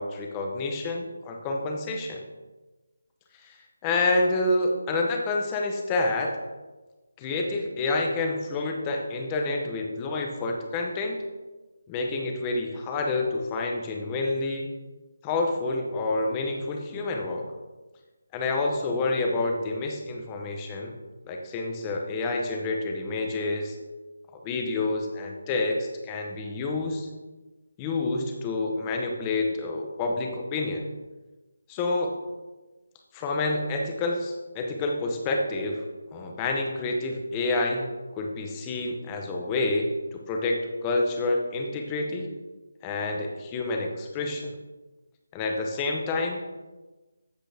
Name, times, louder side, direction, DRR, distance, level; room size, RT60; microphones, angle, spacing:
voice 1, 0.0-2.2 3.4-3.6 3.8-6.3 7.2-11.2 11.9-14.7 15.2-17.4 18.3-21.0 21.2-23.8 24.4-27.1 27.8-30.8 31.7-32.1 33.1-35.8 36.1-42.3 42.8-44.5 45.3-46.4, left 2 dB, 10° left, 2 dB, 0.8 m, -28 dB
13.5 x 8.9 x 3.4 m, 1.2 s
figure-of-eight pair, 180°, 0 cm